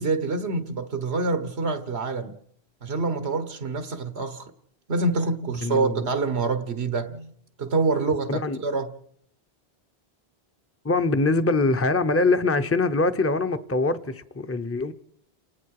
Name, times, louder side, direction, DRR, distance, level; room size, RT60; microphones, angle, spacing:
voice 1, 0.0-2.4 2.8-4.5 4.9-7.3 7.6-8.9, right 3 dB, 90° right, 1.7 m, -26 dB
voice 2, 5.6-6.1 8.3-8.6 10.8-14.9, left 3 dB, 15° left, 0.8 m, -23 dB
29.5 x 19.0 x 4.9 m
omnidirectional pair, 1.1 m